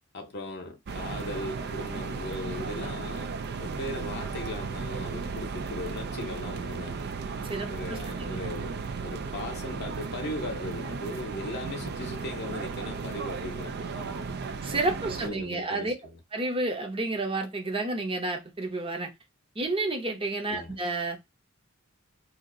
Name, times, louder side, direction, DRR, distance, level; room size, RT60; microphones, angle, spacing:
voice 1, 0.1-7.1 7.7-14.4 15.2-16.2 20.5-20.8, left 1 dB, 50° left, 0.7 m, -38 dB
sound 1, 0.9-15.3, right 4 dB, 50° right, 0.4 m, -35 dB
voice 2, 7.5-8.3 14.6-15.9 16.3-19.1 19.6-21.2, right 2 dB, 25° right, 0.8 m, -30 dB
2.8 x 2.5 x 3.7 m
head